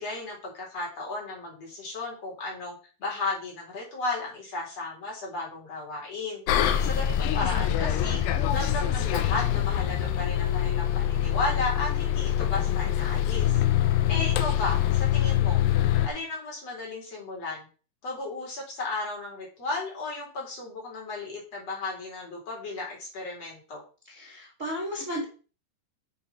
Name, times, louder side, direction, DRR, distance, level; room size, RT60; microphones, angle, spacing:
voice 1, 0.0-6.4 6.8-8.2 8.5-13.6 14.1-15.6 16.0-17.7 18.0-23.8, left 3 dB, 35° left, -2 dB, 4.8 m, -34 dB
Bus, 6.5-16.1, left 11 dB, 75° left, 2.7 m, -25 dB
voice 2, 24.0-25.2, equal, 70° right, -1 dB, 0.7 m, -34 dB
8.2 x 7.1 x 5.7 m, 0.36 s
omnidirectional pair, 5.6 m